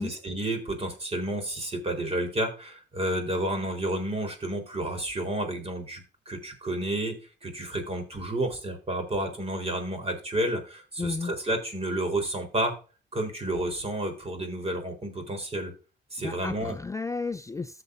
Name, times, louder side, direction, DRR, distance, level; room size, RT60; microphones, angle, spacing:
voice 1, 0.0-7.2 7.4-12.7 13.1-15.7 16.1-16.8, right 1 dB, 30° right, 4.2 m, -31 dB
voice 2, 11.0-11.3 16.2-17.8, left 4 dB, 15° left, 0.4 m, -33 dB
14.5 x 6.9 x 2.7 m
cardioid pair, 90°, 20 cm